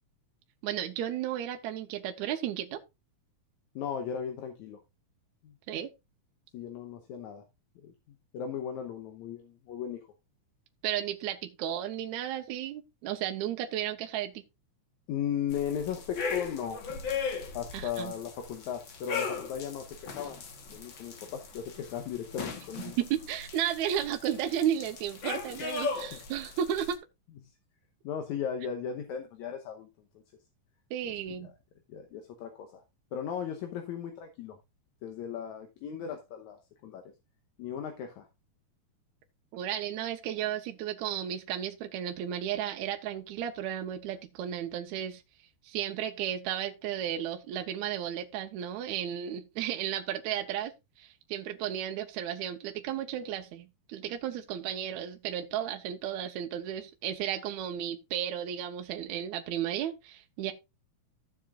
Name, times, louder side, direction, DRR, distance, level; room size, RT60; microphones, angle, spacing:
voice 1, 0.6-2.8 5.7-5.9 10.8-14.4 17.7-18.1 22.8-27.0 30.9-31.5 39.5-45.2 45.6-50.7 51.0-60.5, right 10 dB, 75° right, 2.0 m, -33 dB
voice 2, 3.8-4.8 5.4-5.5 6.5-7.4 7.8-7.9 8.3-10.1 15.1-16.8 17.5-20.4 20.7-23.0 26.0-26.2 28.0-29.9 31.4-31.5 31.9-32.8 33.1-34.6 35.0-37.0 37.6-38.3, left 8 dB, 75° left, 2.3 m, -36 dB
sound 1, 15.5-26.9, left 5 dB, 50° left, 1.6 m, -38 dB
14.5 x 7.3 x 2.4 m
omnidirectional pair, 3.6 m